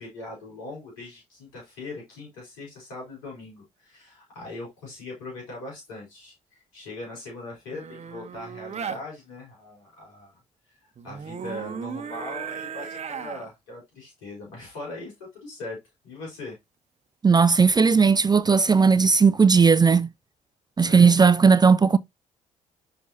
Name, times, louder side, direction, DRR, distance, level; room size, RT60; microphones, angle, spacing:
voice 1, 0.0-10.3 10.7-15.8 16.0-16.6 20.8-21.2, left 2 dB, 90° left, 4.5 m, -40 dB
sound 1, 7.7-9.0 11.0-13.5 17.5-17.8, right 7 dB, 45° right, 1.0 m, -36 dB
voice 2, 17.2-20.1 20.8-22.0, right 5 dB, 25° right, 0.5 m, -17 dB
6.9 x 6.2 x 2.7 m
hypercardioid pair, 55°, 16 cm